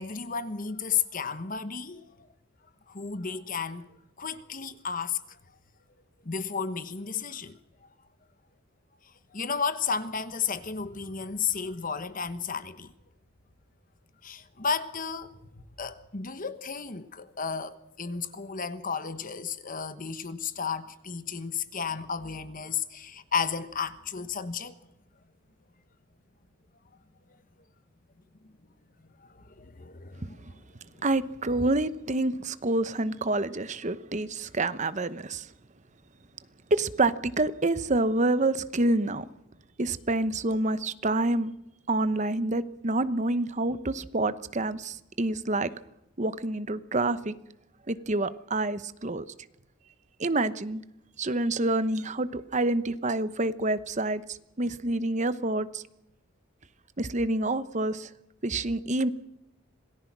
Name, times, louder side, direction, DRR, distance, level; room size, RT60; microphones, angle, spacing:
voice 1, 0.0-2.3 2.9-3.9 4.2-5.4 6.2-7.6 9.0-12.9 14.2-24.7 29.2-30.6 30.9-31.0, left 6 dB, 40° left, 1.2 m, -33 dB
voice 2, 31.0-35.5 36.7-39.2 39.8-41.5 41.9-45.7 46.2-47.3 47.9-49.2 50.2-50.8 51.2-55.8 57.0-58.1 58.4-59.1, right 2 dB, 35° right, 0.9 m, -27 dB
27.0 x 18.5 x 6.1 m
head